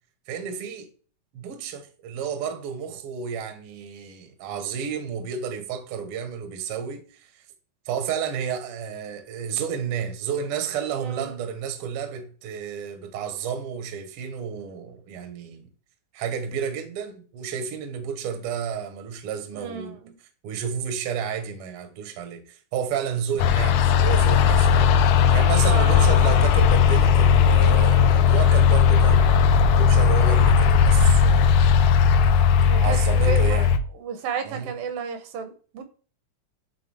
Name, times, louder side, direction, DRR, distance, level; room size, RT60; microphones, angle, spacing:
voice 1, 0.3-0.9 1.3-7.4 7.8-15.7 16.1-20.0 20.4-24.9 25.3-31.9 32.8-33.7 34.4-34.8, right 7 dB, 65° right, 1.5 m, -31 dB
voice 2, 11.0-11.4 19.5-20.1 25.7-26.1 32.7-33.6 34.0-35.8, right 7 dB, 80° right, 2.6 m, -32 dB
sound 1, 23.4-33.8, left 7 dB, 90° left, 1.6 m, -17 dB
8.5 x 3.9 x 3.4 m
omnidirectional pair, 3.9 m